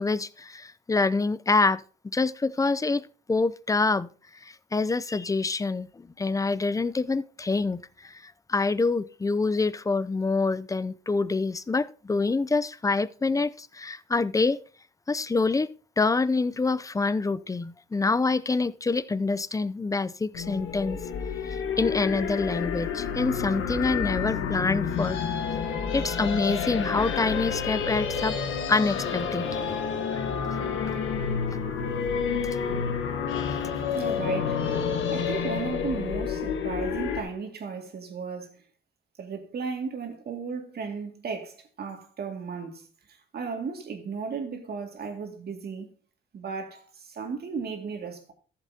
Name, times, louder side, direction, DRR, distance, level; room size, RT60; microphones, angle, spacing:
voice 1, 0.0-4.1 4.4-14.6 15.1-15.7 16.0-21.0 21.5-25.2 25.9-28.4 28.7-29.7 30.1-30.3, left 3 dB, 15° left, 0.5 m, -26 dB
sound 1, 20.3-37.2, left 6 dB, 80° left, 1.4 m, -29 dB
voice 2, 33.9-34.6 35.1-38.6 39.2-42.8 43.3-45.9 46.3-48.3, right 5 dB, 55° right, 2.2 m, -35 dB
14.0 x 7.4 x 2.8 m
cardioid pair, 90°, 20 cm